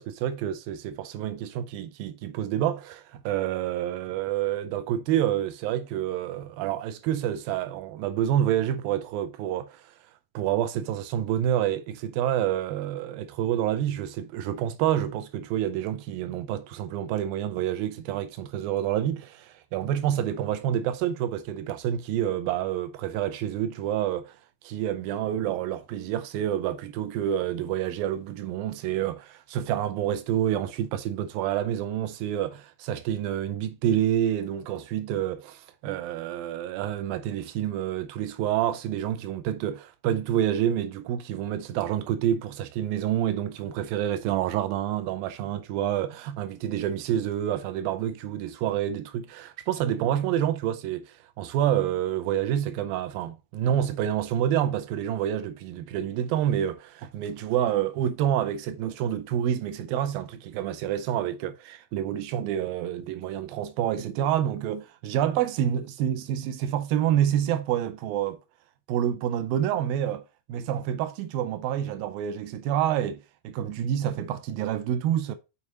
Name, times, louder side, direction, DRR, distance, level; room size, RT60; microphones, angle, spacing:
voice 1, 0.0-9.9 10.3-24.4 24.6-68.4 68.9-70.2 70.5-75.3, right 10 dB, 90° right, 2.4 m, -28 dB
7.2 x 4.7 x 4.0 m
omnidirectional pair, 4.1 m